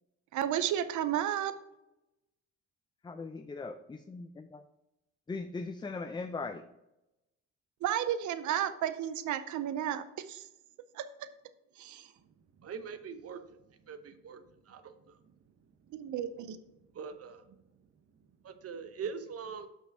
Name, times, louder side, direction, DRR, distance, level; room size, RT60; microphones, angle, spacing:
voice 1, 0.3-1.5 7.8-10.4 11.0-11.3 11.8-12.1 15.9-16.6, right 10 dB, 75° right, 12 dB, 0.7 m, -32 dB
voice 2, 3.0-4.6 5.3-6.6, left 3 dB, 15° left, 8 dB, 0.4 m, -39 dB
voice 3, 12.2-15.6 15.8-15.9 16.9-17.6 18.4-19.7, right 6 dB, 50° right, 10 dB, 0.9 m, -44 dB
6.3 x 5.7 x 4.7 m, 0.92 s
cardioid pair, 90°, 30 cm